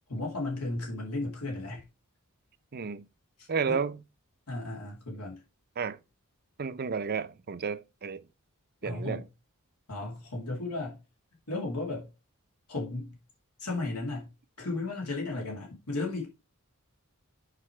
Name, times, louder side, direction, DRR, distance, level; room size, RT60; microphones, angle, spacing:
voice 1, 0.1-1.8 3.4-3.8 4.5-5.4 8.8-9.3 9.9-11.0 11.5-12.1 12.7-13.2 13.6-14.3 14.6-16.3, left 2 dB, 85° left, 2.7 m, -34 dB
voice 2, 2.7-3.1 3.5-4.0 5.8-6.0 6.6-8.2 8.8-9.2, right 5 dB, 45° right, 0.6 m, -32 dB
6.6 x 5.3 x 4.8 m
head